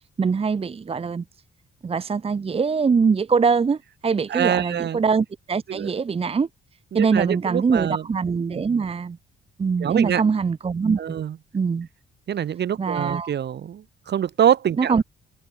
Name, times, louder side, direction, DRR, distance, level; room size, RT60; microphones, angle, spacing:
voice 1, 0.2-1.2 1.8-6.5 6.9-9.2 9.6-11.2 11.5-11.9 12.8-13.3 14.8-15.0, right 5 dB, 30° right, 0.9 m, -23 dB
voice 2, 4.3-5.0 5.7-5.9 6.9-8.1 8.5-8.6 9.8-10.2 11.0-11.4 12.3-15.0, right 9 dB, 60° right, 2.3 m, -24 dB
cardioid pair, 90°, 20 cm